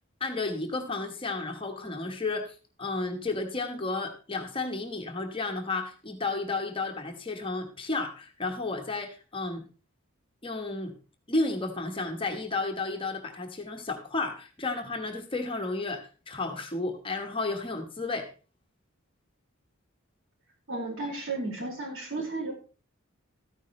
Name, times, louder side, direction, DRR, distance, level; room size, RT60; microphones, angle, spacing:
voice 1, 0.2-9.6 10.4-10.9 11.3-18.3, left 3 dB, 25° left, 4 dB, 1.2 m, -32 dB
voice 2, 20.7-22.5, right 2 dB, 65° right, -2 dB, 4.9 m, -33 dB
13.5 x 10.0 x 3.2 m, 0.36 s
head